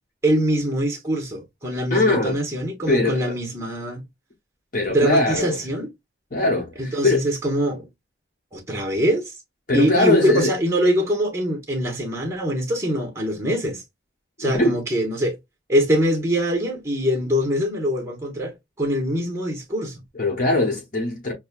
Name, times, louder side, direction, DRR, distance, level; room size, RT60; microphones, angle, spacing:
voice 1, 0.2-4.0 4.9-5.9 6.8-7.9 8.5-9.3 9.7-13.8 14.4-15.4 15.7-20.0, equal, 15° right, 1.1 m, -23 dB
voice 2, 1.9-2.4 2.9-3.4 4.7-5.6 6.3-7.2 9.7-10.5 14.4-14.8 20.2-21.3, left 2 dB, 45° left, 1.0 m, -21 dB
6.2 x 2.2 x 2.4 m
head